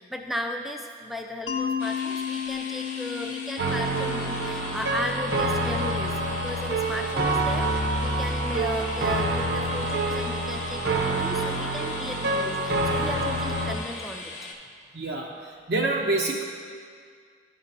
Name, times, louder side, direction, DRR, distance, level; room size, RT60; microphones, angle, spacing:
voice 1, 0.0-7.7 8.0-14.3, left 1 dB, ahead, 3 dB, 0.3 m, -35 dB
Mallet percussion, 1.5-6.2, left 8 dB, 85° left, 0.6 m, -34 dB
sound 1, 1.8-14.5, left 3 dB, 40° left, 0.6 m, -40 dB
sound 2, 3.6-13.7, right 2 dB, 75° right, 0.8 m, -27 dB
voice 2, 14.9-16.4, right 2 dB, 55° right, -2 dB, 0.5 m, -27 dB
12.0 x 5.3 x 2.6 m, 2.1 s
head